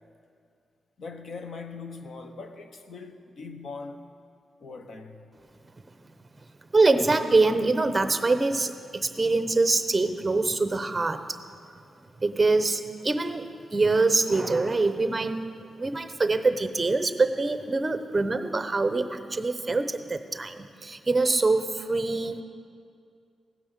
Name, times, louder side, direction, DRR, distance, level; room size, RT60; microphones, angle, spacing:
voice 1, 1.0-4.1 4.6-5.3, left 4 dB, 55° left, 7 dB, 1.0 m, -41 dB
voice 2, 6.7-11.4 12.2-15.5 15.8-22.4, right 3 dB, 20° right, 9 dB, 0.7 m, -24 dB
15.5 x 9.6 x 6.6 m, 2.4 s
wide cardioid pair, 140°, 0 cm